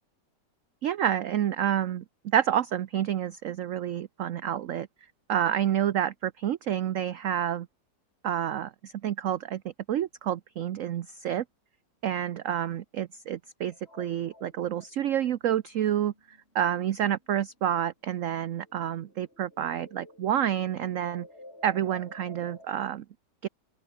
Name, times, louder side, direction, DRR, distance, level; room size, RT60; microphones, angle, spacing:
voice 1, 0.8-4.9 5.3-7.7 8.2-9.6 9.9-11.4 12.0-21.3 21.6-23.0 23.4-23.5, right 10 dB, 60° right, 0.9 m, -29 dB
sound 1, 13.7-17.8 18.1-22.7, left 1 dB, 35° left, 6.8 m, -52 dB
open air
omnidirectional pair, 1.9 m